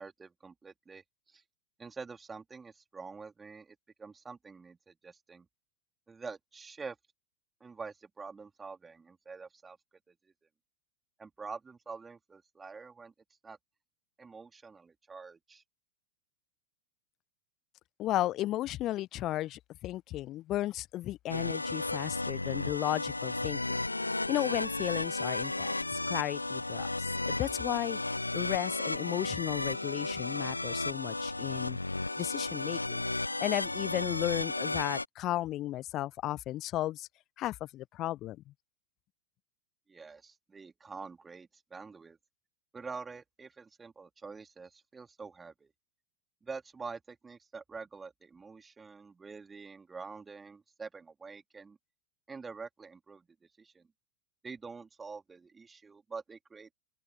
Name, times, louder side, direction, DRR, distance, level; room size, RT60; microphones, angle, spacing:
voice 1, 0.0-1.4 1.8-5.5 6.1-7.0 7.6-9.8 10.1-10.2 11.2-13.1 13.4-13.6 14.2-15.6 39.9-42.2 42.7-45.7 46.4-51.8 52.3-53.3 53.6-53.9 54.4-56.7, right 4 dB, 15° right, 3.1 m, -46 dB
voice 2, 18.0-23.8 24.3-26.9 27.3-28.0 28.3-31.8 32.2-33.0 33.4-37.1 37.4-38.4, left 15 dB, 35° left, 0.6 m, -34 dB
sound 1, 21.3-35.1, left 2 dB, 85° left, 0.4 m, -34 dB
open air
figure-of-eight pair, 90°, 0 cm